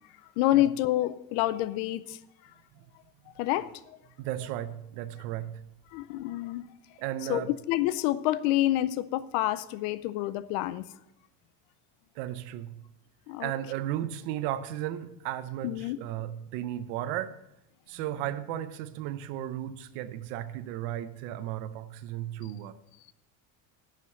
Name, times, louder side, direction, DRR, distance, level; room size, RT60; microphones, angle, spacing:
voice 1, 0.4-2.2 3.4-3.7 5.9-6.7 7.3-10.9 13.3-13.5 15.6-16.0, left 15 dB, 80° left, 16 dB, 0.6 m, -28 dB
voice 2, 4.2-5.6 7.0-7.5 12.1-12.7 13.4-17.4 17.9-22.7, right 12 dB, 80° right, 11 dB, 0.7 m, -35 dB
11.0 x 5.2 x 7.6 m, 0.85 s
cardioid pair, 165°, 39 cm